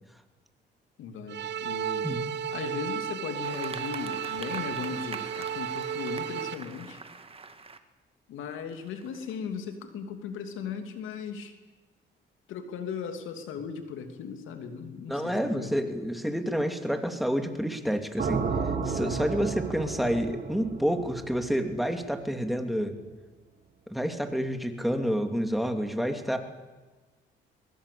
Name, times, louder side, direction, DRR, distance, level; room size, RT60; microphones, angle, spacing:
voice 1, 1.0-2.1 2.5-7.0 8.3-11.5 12.5-15.7, left 6 dB, 85° left, 7 dB, 2.8 m, -37 dB
sound 1, 1.3-6.5, right 8 dB, 60° right, 1.1 m, -33 dB
sound 2, 3.4-7.8 8.5-9.4, right 4 dB, 30° right, 2.0 m, -44 dB
voice 2, 15.1-18.4 18.8-22.9 23.9-26.4, equal, ahead, 6 dB, 2.8 m, -29 dB
sound 3, 18.2-22.3, right 5 dB, 45° right, 4.0 m, -33 dB
22.5 x 22.5 x 8.6 m, 1.3 s
cardioid pair, 90°, 20 cm